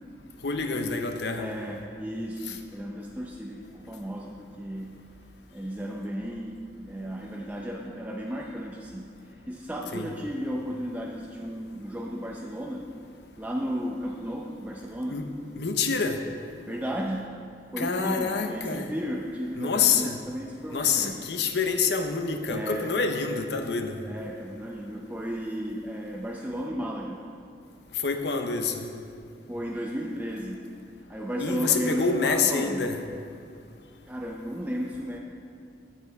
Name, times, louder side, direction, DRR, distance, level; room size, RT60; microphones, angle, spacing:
voice 1, 0.4-1.5 2.5-2.6 9.9-10.1 15.1-15.3 15.6-16.2 17.8-18.9 19.6-20.2 20.7-23.9 28.0-28.9 31.4-33.0, left 5 dB, 75° left, 6 dB, 0.7 m, -27 dB
voice 2, 1.3-5.0 5.5-12.8 13.4-15.2 16.7-17.3 17.7-21.2 22.5-22.9 24.0-27.2 29.5-30.7 31.1-32.9 34.1-35.2, equal, 10° right, -2 dB, 0.5 m, -34 dB
8.7 x 8.1 x 4.7 m, 2.4 s
head